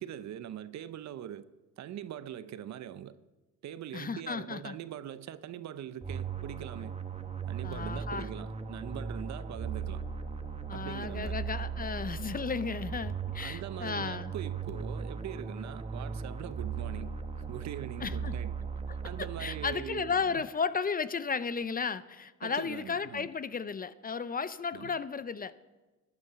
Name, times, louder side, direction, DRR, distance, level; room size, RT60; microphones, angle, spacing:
voice 1, 0.0-1.5 1.8-3.2 3.6-7.0 7.5-10.0 10.7-11.4 13.4-17.1 17.5-18.5 19.0-20.3 22.4-23.3 24.7-24.9, right 10 dB, 65° right, 0.7 m, -42 dB
voice 2, 3.9-4.8 7.6-8.3 10.7-14.3 18.0-18.3 19.4-25.5, left 5 dB, 30° left, 0.5 m, -34 dB
sound 1, 6.0-20.1, right 6 dB, 20° right, 1.0 m, -38 dB
13.5 x 9.6 x 5.7 m
cardioid pair, 90°, 30 cm